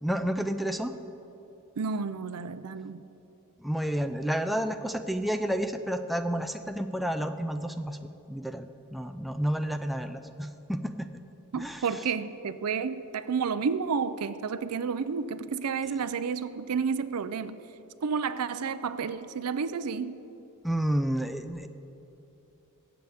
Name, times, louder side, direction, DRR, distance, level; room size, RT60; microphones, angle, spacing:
voice 1, 0.0-0.9 3.6-8.0 8.3-8.7 8.9-11.1 11.6-11.8 20.6-21.7, equal, ahead, 7 dB, 0.4 m, -30 dB
voice 2, 1.8-3.0 11.5-17.6 18.0-20.2, right 5 dB, 85° right, 13 dB, 0.5 m, -31 dB
23.5 x 7.9 x 3.5 m, 3.0 s
head